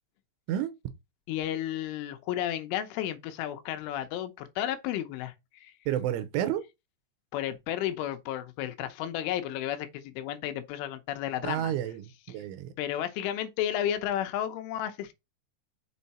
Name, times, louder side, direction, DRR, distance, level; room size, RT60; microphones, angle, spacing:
voice 1, 1.3-5.3 5.6-5.7 7.3-11.7 12.8-15.1, left 11 dB, 80° left, 3.3 m, -32 dB
voice 2, 5.9-6.6 11.4-12.7, right 11 dB, 80° right, 3.3 m, -30 dB
6.8 x 5.6 x 4.2 m
omnidirectional pair, 5.6 m